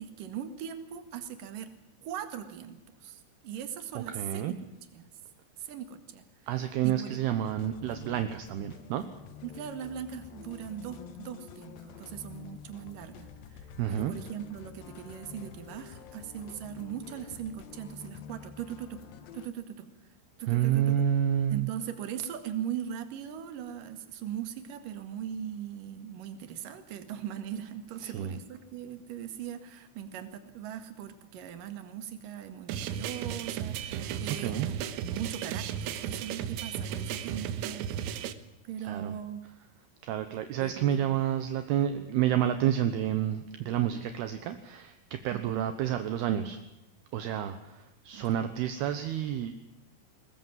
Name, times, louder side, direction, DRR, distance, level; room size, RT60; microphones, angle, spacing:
voice 1, 0.0-1.7 2.0-4.6 4.9-5.1 5.6-6.3 6.8-7.2 9.4-19.0 19.3-19.9 20.4-21.0 21.5-38.0 38.6-39.4 40.6-41.2 45.3-45.7 48.1-48.3, right 9 dB, 55° right, 8 dB, 2.8 m, -40 dB
voice 2, 4.0-4.6 6.5-9.0 13.8-14.1 20.5-21.7 28.0-28.3 34.4-34.7 38.8-39.1 40.0-46.6 47.1-49.5, right 10 dB, 75° right, 8 dB, 2.5 m, -29 dB
sound 1, 7.4-19.5, left 8 dB, 70° left, 2.2 m, -48 dB
sound 2, 32.7-38.3, right 9 dB, 90° right, 3.7 m, -35 dB
22.0 x 20.5 x 7.5 m, 0.92 s
omnidirectional pair, 5.8 m